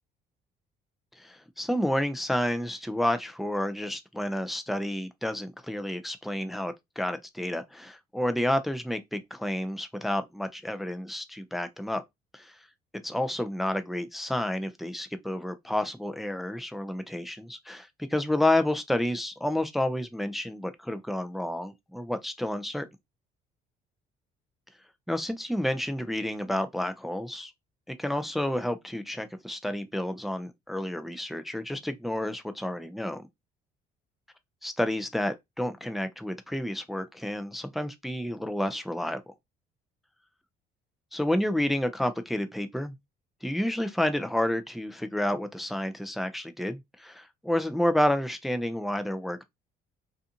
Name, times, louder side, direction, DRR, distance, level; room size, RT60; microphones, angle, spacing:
voice 1, 1.2-12.0 12.3-12.5 13.0-22.9 25.1-27.5 27.9-33.3 34.6-39.2 41.1-42.9 43.4-49.5, left 1 dB, ahead, 0.3 m, -30 dB
2.4 x 2.4 x 2.7 m
cardioid pair, 110°, 17 cm